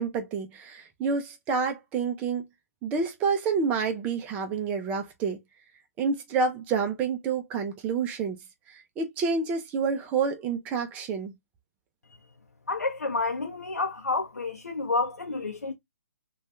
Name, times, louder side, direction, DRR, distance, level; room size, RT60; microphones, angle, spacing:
voice 1, 0.0-2.4 2.8-5.4 6.0-8.4 8.7-11.3, right 5 dB, 15° right, 0.4 m, -28 dB
voice 2, 12.7-15.7, left 3 dB, 85° left, 0.6 m, -29 dB
2.6 x 2.3 x 3.1 m
figure-of-eight pair, 135°, 9 cm